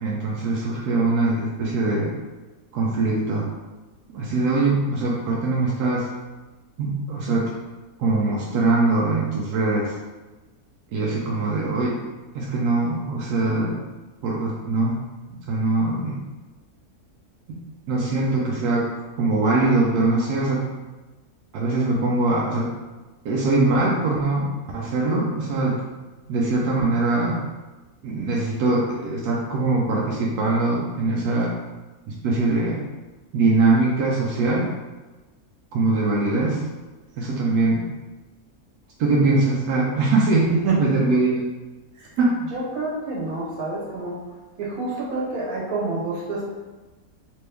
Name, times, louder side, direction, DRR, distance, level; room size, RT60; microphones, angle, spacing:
voice 1, 0.0-2.1 2.7-3.5 4.1-6.1 6.8-7.5 8.0-9.9 10.9-12.0 12.3-13.8 14.2-15.0 15.5-16.2 17.9-18.9 19.2-20.6 21.5-22.7 23.2-25.8 26.3-27.4 28.0-31.5 32.2-32.8 33.3-34.7 35.7-36.6 37.2-37.9 39.0-41.3 42.2-42.3, right 3 dB, 90° right, -4 dB, 1.1 m, -22 dB
voice 2, 42.5-44.2 44.6-46.5, right 3 dB, 70° right, -4 dB, 1.4 m, -28 dB
3.0 x 3.0 x 3.3 m, 1.2 s
omnidirectional pair, 1.6 m